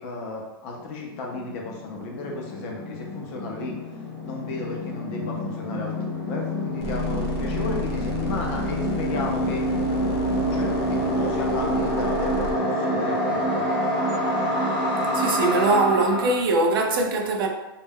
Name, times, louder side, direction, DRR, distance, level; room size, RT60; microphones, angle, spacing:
voice 1, 0.0-3.8 4.2-9.7 10.5-13.7, left 2 dB, 35° left, 0.5 m, -34 dB
sound 1, 0.8-0.9 1.1-16.3, equal, 5° right, 0.7 m, -27 dB
sound 2, 6.8-12.5, right 3 dB, 90° left, 0.6 m, -34 dB
voice 2, 15.1-17.5, right 2 dB, 65° right, 0.5 m, -22 dB
2.3 x 2.1 x 3.4 m
supercardioid pair, 165°, 13 cm